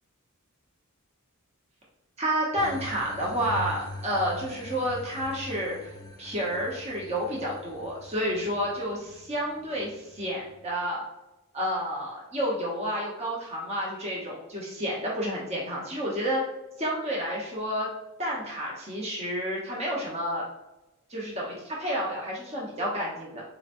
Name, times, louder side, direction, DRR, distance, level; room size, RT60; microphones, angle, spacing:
voice 1, 2.2-11.0 11.5-16.4 16.8-17.9 18.2-20.5 21.1-23.4, equal, 30° right, -4 dB, 0.8 m, -30 dB
sound 1, 2.6-10.6, left 1 dB, 15° left, 0.6 m, -43 dB
4.2 x 2.9 x 2.5 m, 1.0 s
head